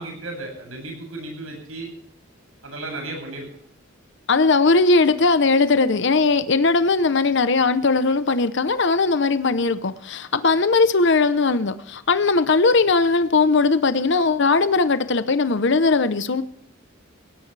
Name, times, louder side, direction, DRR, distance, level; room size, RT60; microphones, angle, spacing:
voice 1, 0.0-1.9 2.6-3.5, right 2 dB, 85° right, 1 dB, 7.8 m, -34 dB
voice 2, 4.3-16.4, left 3 dB, 60° left, 12 dB, 0.8 m, -19 dB
19.0 x 17.0 x 3.4 m, 0.71 s
head